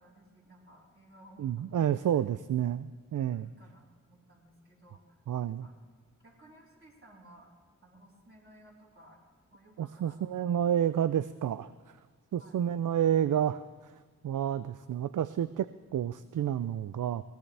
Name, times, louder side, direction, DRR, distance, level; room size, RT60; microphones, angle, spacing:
voice 1, 0.0-2.2 3.3-5.2 5.6-5.7 6.2-7.5 7.8-9.2 9.5-10.2 12.3-12.6, right 1 dB, 40° right, -6 dB, 4.1 m, -57 dB
voice 2, 1.4-3.5 5.3-5.7 9.8-12.0 12.3-13.9 14.2-17.2, right 10 dB, 65° right, 14 dB, 0.4 m, -30 dB
21.0 x 17.5 x 3.4 m, 1.5 s
cardioid pair, 65°, 33 cm